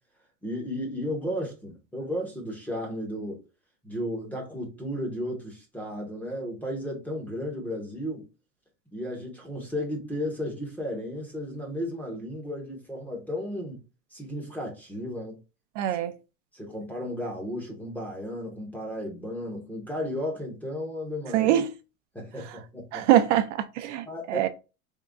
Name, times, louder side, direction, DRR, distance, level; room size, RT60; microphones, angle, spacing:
voice 1, 0.4-3.4 3.8-8.3 8.9-13.8 14.1-15.4 16.5-21.5 22.1-23.1 24.0-24.5, equal, 5° left, 0.7 m, -34 dB
voice 2, 15.8-16.1 21.3-21.7 22.9-24.5, right 12 dB, 55° right, 0.5 m, -23 dB
3.6 x 2.2 x 3.6 m
supercardioid pair, 150°, 43 cm